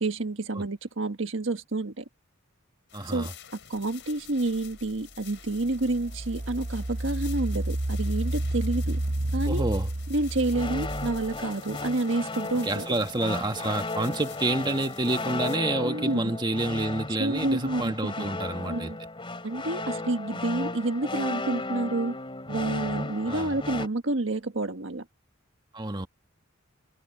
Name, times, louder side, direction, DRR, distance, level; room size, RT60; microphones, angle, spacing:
voice 1, 0.0-2.0 3.1-3.3 3.7-9.0 9.3-9.6 10.1-12.9 15.8-16.3 17.2-18.3 18.7-19.0 19.4-22.2 22.5-25.0, right 2 dB, 70° right, 1.5 m, -29 dB
sound 1, 2.9-15.6, left 11 dB, 60° left, 7.4 m, -49 dB
voice 2, 2.9-3.3 9.4-9.9 12.6-18.9 23.3-23.6 25.7-26.1, right 2 dB, 20° right, 1.7 m, -29 dB
Engine, 4.7-4.8 5.4-11.4, right 1 dB, 45° right, 0.9 m, -30 dB
sound 2, 10.5-23.9, left 2 dB, 25° left, 2.9 m, -35 dB
head